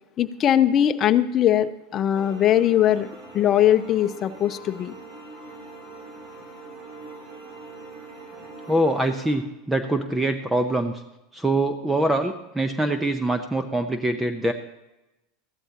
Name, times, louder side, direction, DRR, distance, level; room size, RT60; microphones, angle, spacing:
voice 1, 0.2-3.1 3.3-4.9, left 11 dB, 40° left, 11 dB, 0.7 m, -20 dB
sound 1, 2.1-9.4, right 3 dB, 45° right, 3.1 m, -42 dB
voice 2, 8.7-11.0 11.3-14.5, right 1 dB, 10° right, 7 dB, 0.8 m, -24 dB
15.0 x 12.5 x 2.9 m, 0.97 s
supercardioid pair, 110°, 0 cm